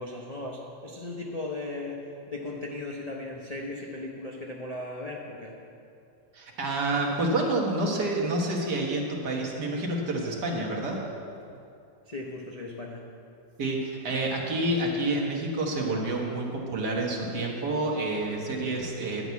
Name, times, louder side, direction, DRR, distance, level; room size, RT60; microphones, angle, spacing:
voice 1, 0.0-5.6 12.0-13.1, left 2 dB, 55° left, -2 dB, 0.4 m, -37 dB
voice 2, 6.3-11.1 13.6-19.3, right 2 dB, 60° right, -1 dB, 1.9 m, -28 dB
10.5 x 6.1 x 8.2 m, 2.5 s
omnidirectional pair, 2.1 m